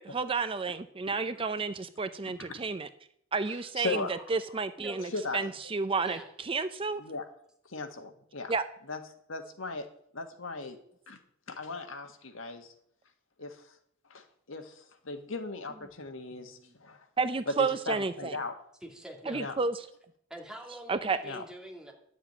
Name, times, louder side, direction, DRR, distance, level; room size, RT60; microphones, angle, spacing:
voice 1, 0.0-2.9 3.3-4.0 4.3-6.2 6.5-7.0 8.5-8.6 17.2-18.4 19.3-19.7 20.9-21.2, right 4 dB, 25° right, 11 dB, 0.5 m, -31 dB
voice 2, 2.2-2.5 3.5-4.3 5.1-5.5 7.0-7.2 7.6-8.5 8.9-9.0 9.3-9.9 10.1-10.8 11.1-11.2 11.5-12.7 13.4-13.7 14.1-17.0 17.5-18.6 19.3-19.5 21.2-21.4, left 3 dB, 85° left, 6 dB, 1.6 m, -38 dB
voice 3, 4.8-5.1 6.0-6.3 18.8-19.5 20.3-21.9, right 1 dB, 5° right, 0 dB, 2.4 m, -45 dB
11.5 x 7.3 x 8.7 m, 0.68 s
head